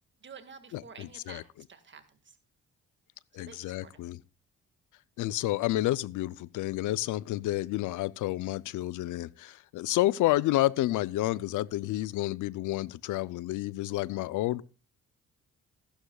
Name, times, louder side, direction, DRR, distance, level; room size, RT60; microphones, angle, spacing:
voice 1, 0.2-2.4 3.3-4.0, right 5 dB, 40° right, 1.7 m, -50 dB
voice 2, 0.7-1.4 3.3-4.2 5.2-14.6, left 16 dB, 80° left, 0.5 m, -30 dB
14.5 x 11.5 x 2.3 m
cardioid pair, 90°, 30 cm